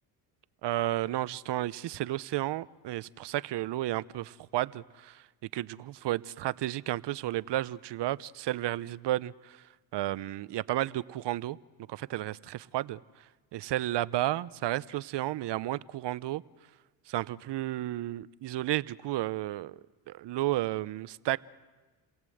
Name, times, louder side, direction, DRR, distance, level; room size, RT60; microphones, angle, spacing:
voice 1, 0.6-4.2 4.5-5.2 5.5-9.6 9.9-11.6 11.9-13.0 13.5-16.4 17.1-19.8 20.1-21.4, right 15 dB, 65° right, 18 dB, 0.8 m, -32 dB
29.0 x 17.5 x 7.9 m, 1.3 s
supercardioid pair, 65°, 45 cm